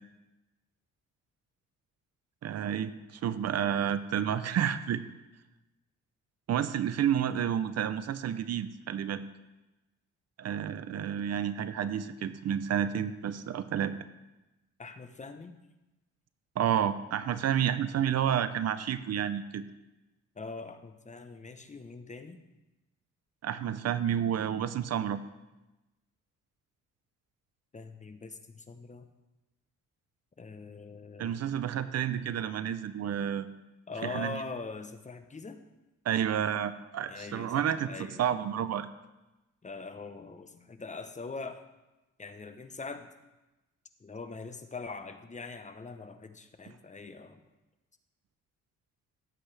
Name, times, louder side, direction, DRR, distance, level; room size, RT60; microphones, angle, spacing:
voice 1, 2.4-2.9 3.2-5.0 6.5-9.2 10.4-13.9 16.6-19.6 23.4-25.2 31.2-33.5 34.1-34.3 36.0-38.9, right 9 dB, 55° right, 13 dB, 0.7 m, -30 dB
voice 2, 14.8-15.5 20.4-22.4 27.7-29.1 30.4-31.4 33.9-35.6 37.1-38.2 39.6-41.6 42.2-43.1 44.0-47.4, left 4 dB, 25° left, 8 dB, 0.9 m, -42 dB
16.0 x 8.0 x 3.4 m, 1.0 s
cardioid pair, 90°, 30 cm